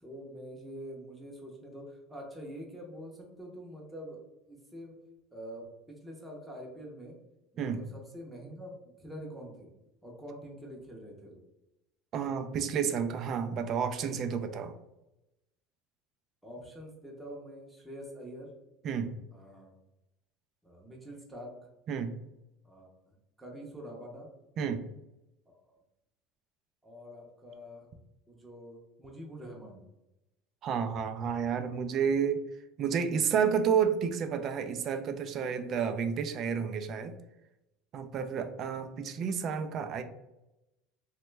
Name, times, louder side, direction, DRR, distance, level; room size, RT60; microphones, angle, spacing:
voice 1, 0.0-4.2 4.5-4.9 5.3-7.2 7.5-9.7 10.0-11.4 16.4-18.5 19.3-19.7 20.6-21.5 22.6-24.3 25.5-25.6 26.8-27.9 28.3-29.8, equal, 5° right, -2 dB, 0.6 m, -46 dB
voice 2, 12.1-14.8 18.8-19.1 21.9-22.1 24.6-24.8 30.6-32.4 32.8-37.1 37.9-40.0, right 7 dB, 45° right, 8 dB, 0.3 m, -30 dB
3.0 x 2.2 x 3.1 m, 0.94 s
supercardioid pair, 125°, 0 cm